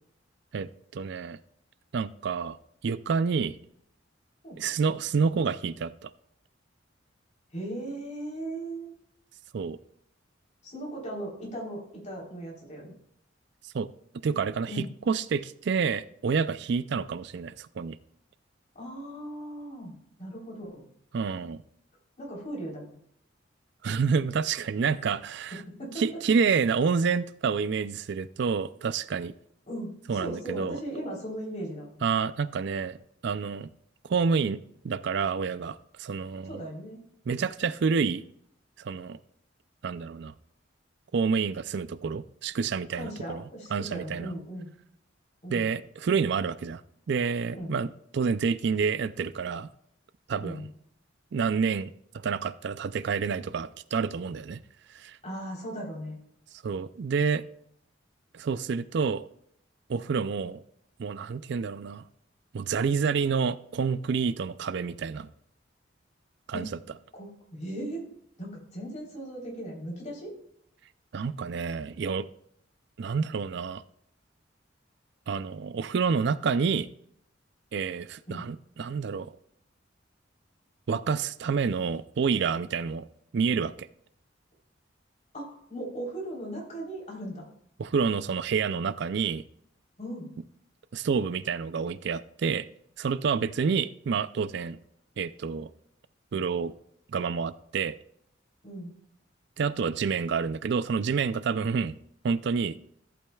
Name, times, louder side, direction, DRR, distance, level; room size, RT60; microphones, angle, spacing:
voice 1, 0.5-1.4 1.9-2.6 2.8-3.6 4.6-6.1 9.5-9.8 13.7-13.9 14.2-18.0 21.1-21.6 23.8-25.6 26.0-29.3 30.1-30.8 32.0-33.0 33.2-33.7 34.1-34.6 34.8-36.6 37.3-38.2 38.8-39.2 39.8-40.3 41.1-43.4 43.7-44.3 45.5-46.8 47.1-47.9 48.1-49.7 50.3-50.7 51.3-54.6 54.9-55.2 56.6-57.4 58.3-59.3 59.9-60.6 61.0-62.0 62.5-65.3 66.5-66.7 71.1-72.3 73.0-73.8 75.3-76.9 77.7-79.3 80.9-83.1 83.3-83.9 87.8-89.4 90.9-92.7 93.0-94.8 95.2-95.7 96.3-96.7 97.1-98.0 99.6-101.9 102.2-102.8, right 5 dB, 60° right, 15 dB, 0.4 m, -28 dB
voice 2, 7.5-8.9 10.6-12.9 14.7-14.9 18.8-19.9 20.2-20.8 22.2-22.9 25.0-25.1 25.8-26.0 29.7-32.0 36.5-37.0 42.9-44.7 45.4-45.7 47.5-47.8 50.4-50.6 55.2-56.2 66.5-66.7 67.1-68.1 68.4-70.3 78.3-78.4 85.3-87.4 90.0-90.3 98.6-98.9, right 1 dB, 40° left, -2 dB, 3.6 m, -38 dB
14.5 x 8.6 x 2.3 m, 0.70 s
head